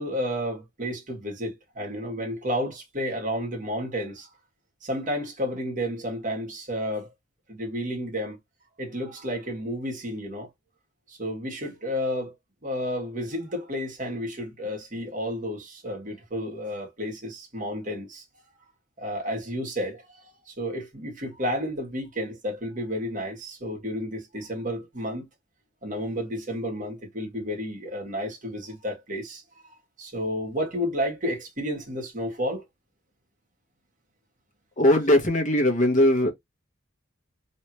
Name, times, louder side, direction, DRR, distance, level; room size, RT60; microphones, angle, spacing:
voice 1, 0.0-4.3 4.8-7.1 7.5-8.4 8.8-10.5 11.1-12.3 12.6-18.2 19.0-25.3 25.8-32.6, equal, 40° right, 1.6 m, -31 dB
voice 2, 34.8-36.3, left 1 dB, 40° left, 1.1 m, -20 dB
3.2 x 2.7 x 3.0 m
head